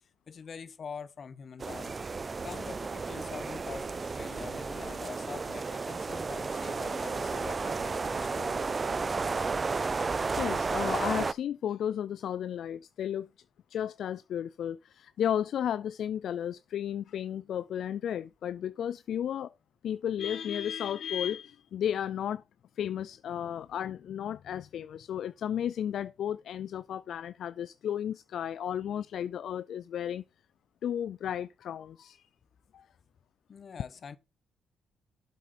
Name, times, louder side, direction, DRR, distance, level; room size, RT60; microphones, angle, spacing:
voice 1, 0.3-1.9 2.4-8.6 33.5-34.2, left 6 dB, 50° left, 1.1 m, -44 dB
sound 1, 1.6-11.3, right 4 dB, 30° right, 0.5 m, -33 dB
Wind instrument woodwind instrument, 6.5-10.5, right 3 dB, 85° right, 2.4 m, -50 dB
voice 2, 10.3-13.3 13.7-19.5 19.8-22.4 22.8-30.2 30.8-32.3 32.7-32.9, left 9 dB, 65° left, 0.4 m, -33 dB
8.3 x 7.5 x 4.3 m
cardioid pair, 90°, 0 cm